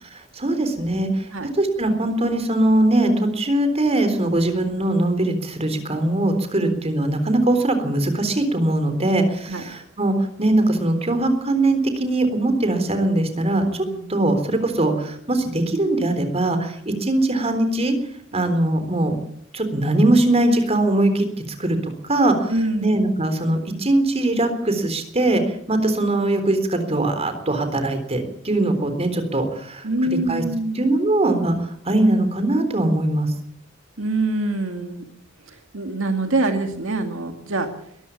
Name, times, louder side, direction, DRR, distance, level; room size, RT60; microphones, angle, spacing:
voice 1, 0.1-1.3 1.6-17.9 18.3-19.2 19.5-22.5 22.8-30.4 30.7-33.3, right 1 dB, 30° right, 8 dB, 3.7 m, -21 dB
voice 2, 22.5-23.0 29.8-31.0 34.0-35.0 35.5-37.7, right 2 dB, 80° right, 6 dB, 2.3 m, -25 dB
22.0 x 14.0 x 8.5 m, 0.71 s
head